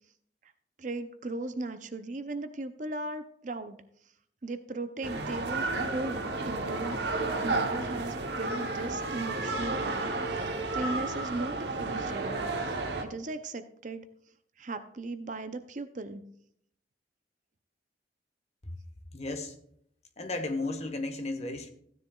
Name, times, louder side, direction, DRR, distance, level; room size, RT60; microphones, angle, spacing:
voice 1, 0.8-3.8 4.4-14.0 14.6-16.2, right 2 dB, 40° right, 0.6 m, -38 dB
sound 1, 5.0-13.0, right 3 dB, 65° right, 1.0 m, -32 dB
voice 2, 19.1-19.5 20.2-21.7, left 2 dB, 35° left, 1.1 m, -34 dB
15.0 x 10.0 x 2.3 m
head